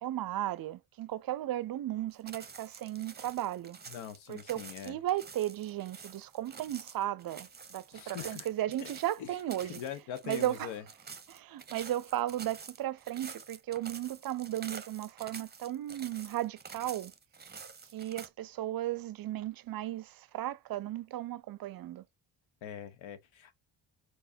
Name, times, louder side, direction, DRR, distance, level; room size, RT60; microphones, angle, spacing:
voice 1, 0.0-3.8 4.3-9.8 10.2-10.7 11.3-17.1 17.9-22.0, right 13 dB, 50° right, 0.5 m, -35 dB
sound 1, 2.1-18.3, right 5 dB, 20° right, 0.8 m, -48 dB
voice 2, 3.9-5.0 7.9-8.5 8.8-8.9 9.2-9.3 9.7-10.8 22.6-23.5, left 9 dB, 85° left, 1.0 m, -42 dB
4.8 x 4.1 x 2.6 m
supercardioid pair, 70°, 46 cm